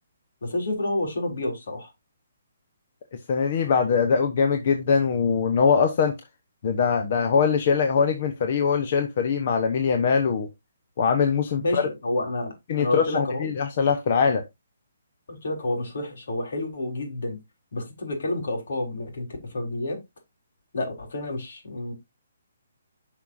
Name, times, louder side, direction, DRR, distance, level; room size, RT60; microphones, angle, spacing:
voice 1, 0.4-1.9 11.6-12.5 12.8-13.5 15.3-17.4 17.7-19.3 19.5-20.0 20.7-21.9, left 1 dB, 65° left, 4.1 m, -29 dB
voice 2, 3.1-6.1 6.6-10.5 11.0-11.9 12.7-14.4, left 6 dB, 40° left, 1.0 m, -22 dB
11.0 x 5.7 x 2.7 m
hypercardioid pair, 165°, 0 cm